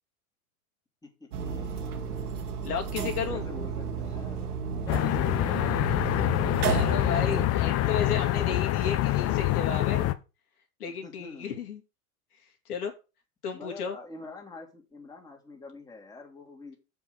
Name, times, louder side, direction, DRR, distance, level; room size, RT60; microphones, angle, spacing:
voice 1, 1.0-2.0 2.9-6.0 11.0-11.7 13.5-16.8, left 2 dB, 10° left, 0 dB, 2.6 m, -45 dB
sound 1, 1.3-7.5, right 6 dB, 85° right, 2.1 m, -33 dB
voice 2, 2.6-3.4 6.7-10.1 10.8-11.8 12.7-12.9 13.4-14.0, left 6 dB, 85° left, 3 dB, 2.7 m, -33 dB
sound 2, 4.9-10.1, left 14 dB, 35° left, 0.8 m, -26 dB
7.1 x 5.6 x 6.7 m, 0.30 s
hypercardioid pair, 115°, 44 cm